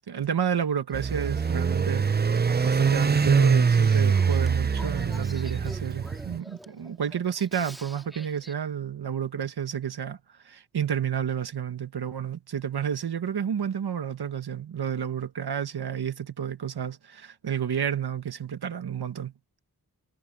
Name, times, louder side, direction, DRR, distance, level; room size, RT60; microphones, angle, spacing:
voice 1, 0.1-2.1 2.6-10.2 10.4-19.3, right 8 dB, 80° right, 1.5 m, -30 dB
Male speech man speaking / Female speech woman speaking / Conversation, 0.9-8.5, equal, ahead, 2.1 m, -48 dB
sound 1, 0.9-6.4, right 5 dB, 25° right, 0.5 m, -23 dB
wide cardioid pair, 80°, 38 cm